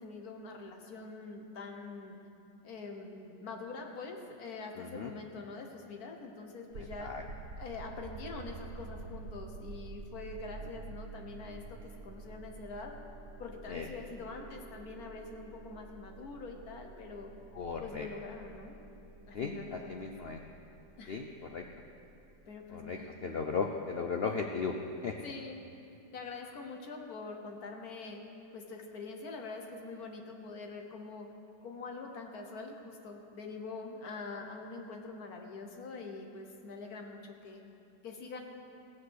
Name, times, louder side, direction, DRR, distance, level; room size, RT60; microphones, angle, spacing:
voice 1, 0.0-2.2 2.6-7.1 7.6-12.9 13.4-17.3 17.8-18.7 19.3-20.1 21.0-21.2 22.5-23.1 25.2-25.6 26.1-28.2 28.5-31.3 31.6-37.6 38.0-38.4, left 3 dB, 60° left, 3 dB, 1.6 m, -44 dB
voice 2, 4.8-5.1 7.0-7.2 13.7-13.9 17.5-18.1 19.3-20.4 21.1-21.6 22.7-24.7 25.0-25.1, left 5 dB, 80° left, 3 dB, 0.5 m, -36 dB
sound 1, 6.7-23.6, right 3 dB, 80° right, 1.5 m, -49 dB
17.0 x 7.5 x 6.4 m, 2.7 s
omnidirectional pair, 1.8 m